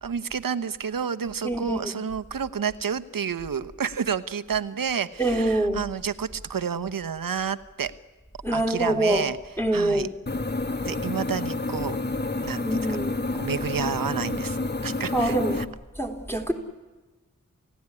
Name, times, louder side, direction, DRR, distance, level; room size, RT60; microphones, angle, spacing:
voice 1, 0.0-7.9 8.5-9.4 9.7-10.1 10.8-12.0 12.4-13.0 13.4-15.7, right 7 dB, 85° right, 10 dB, 1.1 m, -30 dB
voice 2, 1.4-1.8 5.2-5.8 8.4-9.3 9.6-10.1 12.6-13.1 15.1-15.6 16.0-16.5, right 1 dB, 5° left, 3 dB, 3.4 m, -25 dB
sound 1, 10.3-15.6, left 2 dB, 30° left, 1.1 m, -29 dB
29.0 x 16.5 x 9.7 m, 1.2 s
wide cardioid pair, 105°, 33 cm